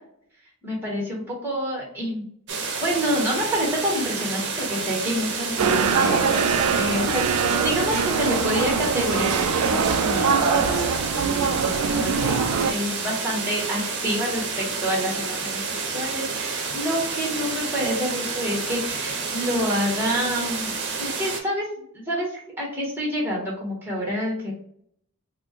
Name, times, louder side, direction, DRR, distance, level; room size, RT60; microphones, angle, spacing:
voice 1, 0.6-2.2 2.8-10.9 11.8-12.4 12.7-24.5, equal, 10° right, -2 dB, 1.1 m, -28 dB
sound 1, 2.5-21.4, right 4 dB, 50° right, 0.8 m, -29 dB
sound 2, 5.6-12.7, right 5 dB, 90° right, 0.4 m, -23 dB
4.3 x 2.1 x 2.9 m, 0.66 s
head